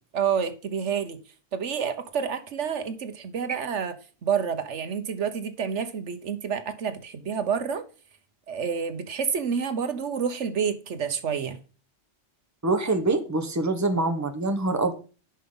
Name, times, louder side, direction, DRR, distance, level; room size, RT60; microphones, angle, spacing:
voice 1, 0.1-1.2 1.5-4.0 4.2-7.8 8.5-11.6, right 7 dB, 75° right, 10 dB, 1.3 m, -28 dB
voice 2, 12.6-14.9, right 2 dB, 15° right, 6 dB, 1.1 m, -25 dB
11.0 x 5.5 x 3.8 m, 0.37 s
omnidirectional pair, 1.2 m